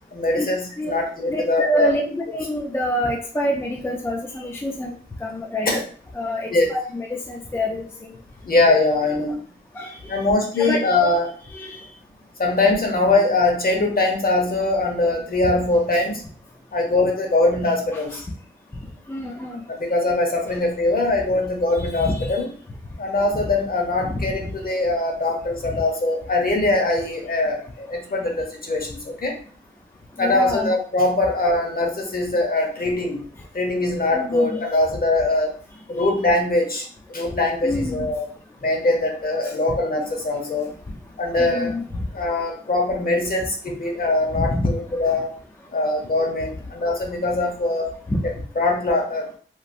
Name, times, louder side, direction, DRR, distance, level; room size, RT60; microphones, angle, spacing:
voice 1, 0.1-1.9 5.7-5.8 6.5-6.7 8.4-9.4 10.1-11.3 12.4-16.2 16.7-18.3 19.7-22.5 23.0-29.3 30.2-33.2 33.5-35.6 35.9-38.3 38.6-40.7 41.2-41.7 42.1-45.3 45.7-47.9 48.2-49.3, left 2 dB, 45° left, 1 dB, 0.8 m, -22 dB
voice 2, 1.3-4.9 5.2-5.8 6.1-8.2 9.7-10.2 10.5-10.8 11.5-11.8 17.9-18.0 19.1-19.6 21.8-22.3 23.3-23.4 24.0-24.3 25.7-25.8 30.2-30.7 34.1-34.6 37.6-38.1 39.4-39.5 41.4-41.8 44.3-44.7 45.0-45.2 48.1-48.2, left 1 dB, 10° left, -1 dB, 0.4 m, -27 dB
3.1 x 2.5 x 2.5 m, 0.43 s
wide cardioid pair, 115°, 21 cm